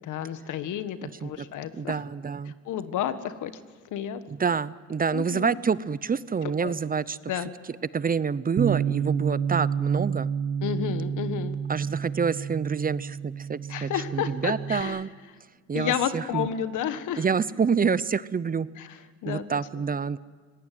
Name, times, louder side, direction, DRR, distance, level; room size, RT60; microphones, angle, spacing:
voice 1, 0.1-2.0 2.5-3.5 3.9-4.2 5.1-5.6 6.6-6.8 7.3-7.5 10.6-11.6 13.7-15.0 15.7-17.2 18.8-18.9 19.2-19.4, left 10 dB, 80° left, 11 dB, 1.6 m, -31 dB
voice 2, 1.0-1.5 1.7-2.5 4.3-7.2 7.9-10.3 11.7-15.1 15.7-16.5 17.2-18.7 19.3-20.2, right 6 dB, 30° right, 18 dB, 0.7 m, -27 dB
Bass guitar, 8.6-14.8, right 7 dB, 55° right, 1.3 m, -29 dB
25.0 x 19.5 x 9.3 m, 1.5 s
cardioid pair, 90°, 30 cm